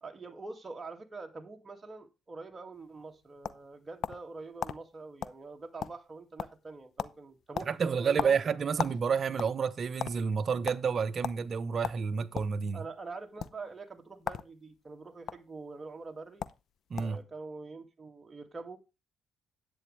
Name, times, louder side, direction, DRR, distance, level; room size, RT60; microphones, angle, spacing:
voice 1, 0.0-8.4 12.7-16.4 17.0-18.8, right 3 dB, 25° right, 2.3 m, -45 dB
sound 1, 2.9-4.3 4.6-4.8 5.2-5.4 5.7-6.1 6.4-6.7 7.0-7.2 7.5-9.0 9.3-10.1 10.7-10.8 11.2-11.4 11.8-12.5 13.3-13.5 14.2-14.5 14.8-15.3 16.1-16.2 16.4-16.6 17.0-17.2, left 8 dB, 65° left, 0.7 m, -36 dB
voice 2, 7.7-12.8 16.9-17.2, right 6 dB, 45° right, 1.0 m, -30 dB
10.5 x 8.7 x 3.4 m
cardioid pair, 95°, 0 cm